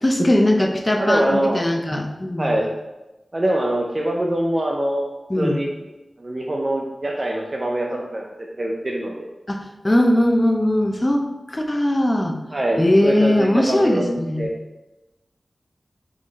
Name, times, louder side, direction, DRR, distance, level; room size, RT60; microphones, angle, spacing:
voice 1, 0.0-2.5 5.3-5.6 9.5-12.4 12.8-14.4, left 1 dB, 25° left, 4 dB, 0.6 m, -20 dB
voice 2, 1.0-1.6 2.4-2.7 3.3-5.0 5.4-5.7 6.2-8.3 8.6-9.3 12.5-14.5, right 1 dB, 40° right, -1 dB, 0.5 m, -23 dB
3.8 x 3.1 x 3.9 m, 1.0 s
cardioid pair, 50°, 0 cm